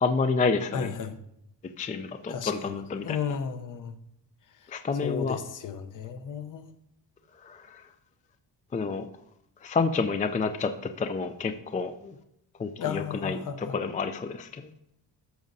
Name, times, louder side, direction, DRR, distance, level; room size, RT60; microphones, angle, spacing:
voice 1, 0.0-0.9 1.8-3.2 4.7-5.4 7.4-7.9 8.7-9.0 9.6-12.1 12.6-14.7, left 4 dB, 20° left, 0.3 m, -29 dB
voice 2, 0.7-1.2 2.3-2.8 3.0-3.9 5.0-6.7 12.8-13.7, left 7 dB, 50° left, 0.7 m, -34 dB
14.0 x 6.4 x 2.7 m
cardioid pair, 135°, 41 cm